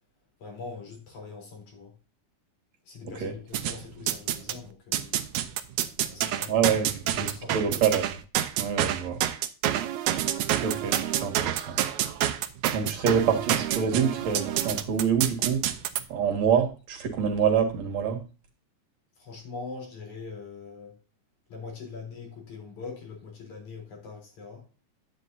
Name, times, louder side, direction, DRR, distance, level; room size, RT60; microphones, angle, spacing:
voice 1, 0.4-1.9 2.8-5.2 6.1-6.8 7.1-7.7 19.2-21.0 21.5-24.6, left 4 dB, 75° left, 5.1 m, -42 dB
sound 1, 3.5-4.6 4.9-16.0, right 12 dB, 80° right, 2.1 m, -28 dB
voice 2, 6.5-6.9 7.2-8.0 8.6-9.2 10.6-11.0 11.2-11.8 12.7-15.6 16.1-18.2, right 7 dB, 65° right, 3.0 m, -26 dB
9.8 x 9.4 x 2.7 m
omnidirectional pair, 3.4 m